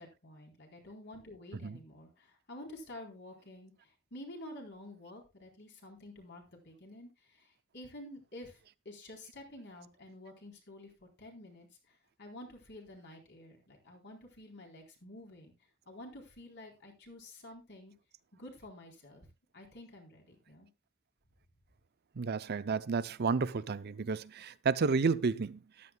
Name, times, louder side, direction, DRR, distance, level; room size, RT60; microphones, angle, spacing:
voice 1, 0.0-8.6 8.9-11.7 12.2-15.5 15.9-17.9 18.3-19.3 19.5-20.7, left 1 dB, 55° left, 3.8 m, -50 dB
voice 2, 22.2-25.6, right 4 dB, 50° right, 0.5 m, -31 dB
13.5 x 11.0 x 2.3 m
head